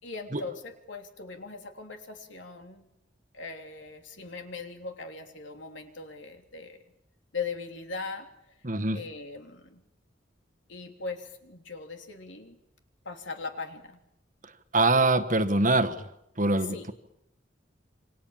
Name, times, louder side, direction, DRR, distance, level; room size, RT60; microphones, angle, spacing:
voice 1, 0.0-2.9 3.3-6.8 7.3-8.6 8.9-9.8 10.7-12.6 13.0-14.0 16.6-16.9, left 4 dB, 75° left, 4 dB, 3.3 m, -39 dB
voice 2, 8.6-9.0 14.7-16.0 16.4-16.9, right 2 dB, 40° right, 11 dB, 1.4 m, -24 dB
28.5 x 25.5 x 7.3 m, 0.82 s
head